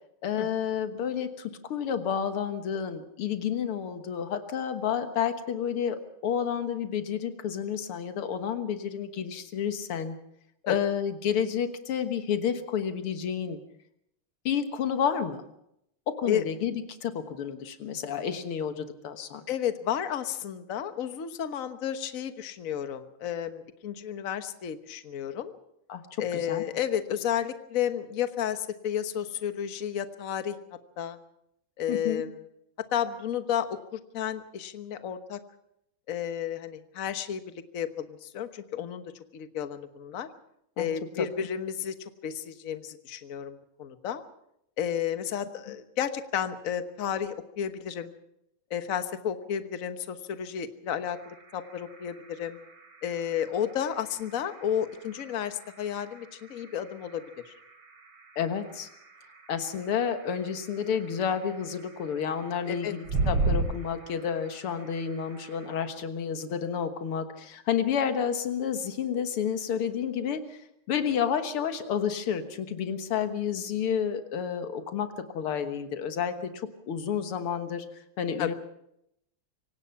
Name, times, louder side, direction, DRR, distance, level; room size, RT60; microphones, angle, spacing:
voice 1, 0.2-10.2 10.6-13.6 14.4-15.4 16.1-19.5 25.9-26.0 26.3-26.6 31.9-32.2 40.8-40.9 41.2-41.3 58.4-58.9 59.5-77.9 78.2-78.5, left 8 dB, 90° left, 9 dB, 2.3 m, -30 dB
voice 2, 19.5-25.5 26.2-30.6 31.0-31.2 31.8-32.4 32.8-35.4 36.1-40.3 40.8-44.2 44.8-48.1 48.7-52.6 53.0-57.5 62.7-62.9 78.4-78.5, left 9 dB, 45° left, 10 dB, 1.4 m, -32 dB
sound 1, 51.0-65.9, right 3 dB, 90° right, 3.9 m, -37 dB
26.0 x 17.5 x 5.8 m, 0.77 s
omnidirectional pair, 2.4 m